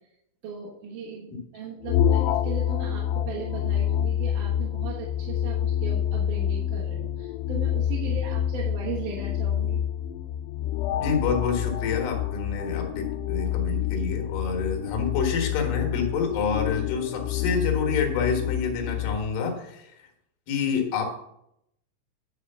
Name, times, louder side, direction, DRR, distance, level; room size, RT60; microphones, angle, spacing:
voice 1, 0.4-9.8, right 5 dB, 60° right, -5 dB, 2.5 m, -37 dB
sound 1, 1.8-19.2, left 10 dB, 85° left, 2.7 m, -27 dB
voice 2, 11.0-20.1 20.5-21.1, left 5 dB, 60° left, 2 dB, 2.8 m, -28 dB
9.7 x 4.9 x 6.7 m, 0.78 s
omnidirectional pair, 4.9 m